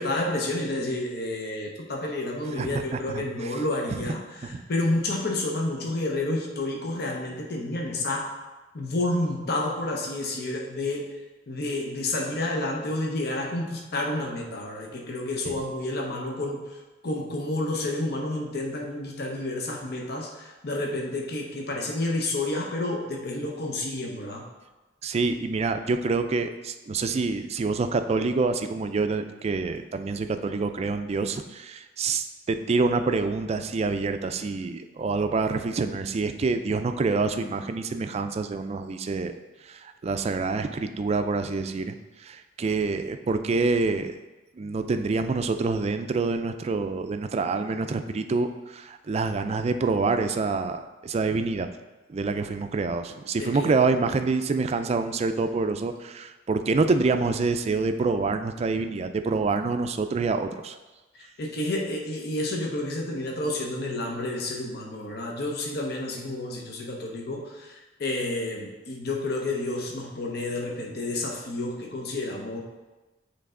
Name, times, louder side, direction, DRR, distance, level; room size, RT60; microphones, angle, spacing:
voice 1, 0.0-8.3 8.7-11.1 11.5-16.7 17.0-24.4 53.4-53.7 61.4-72.6, left 2 dB, 60° left, 0 dB, 0.8 m, -30 dB
voice 2, 2.6-3.5 3.9-4.0 4.4-4.6 15.4-15.5 25.0-39.4 39.7-44.2 44.6-51.7 52.1-60.8, right 3 dB, 35° right, 8 dB, 0.3 m, -27 dB
7.9 x 3.3 x 3.7 m, 1.1 s
head